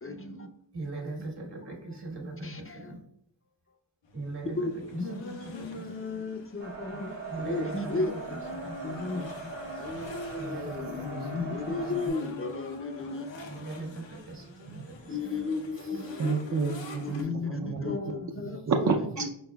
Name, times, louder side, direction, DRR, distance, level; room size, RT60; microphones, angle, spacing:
voice 1, 0.0-0.5 2.4-2.9 4.6-8.1 8.8-13.3 15.1-16.5 17.0-18.6 19.2-19.3, left 3 dB, 30° left, 4 dB, 0.5 m, -34 dB
voice 2, 0.7-3.0 4.1-6.2 7.3-9.1 10.4-11.9 13.5-15.3 15.7-16.2, right 2 dB, 65° right, 0 dB, 1.5 m, -41 dB
sound 1, 4.0-17.2, left 3 dB, 80° left, 0.8 m, -46 dB
sound 2, 6.6-12.1, right 3 dB, 80° right, 1.2 m, -41 dB
voice 3, 16.2-17.9 18.4-19.3, right 4 dB, 40° right, 2 dB, 0.5 m, -30 dB
4.6 x 4.1 x 2.3 m, 0.74 s
cardioid pair, 45°, 44 cm